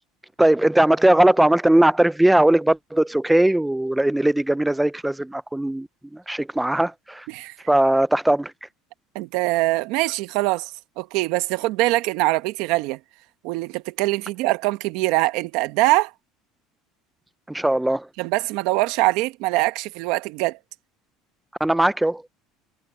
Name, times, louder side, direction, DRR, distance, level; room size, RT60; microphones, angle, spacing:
voice 1, 0.4-5.9 6.1-7.3 7.7-8.5 17.5-18.1 21.6-22.2, right 1 dB, 5° right, 0.3 m, -19 dB
voice 2, 9.1-10.7 11.0-13.0 13.4-16.1 18.2-20.6, right 20 dB, 70° right, 1.1 m, -23 dB
cardioid pair, 150°, 0 cm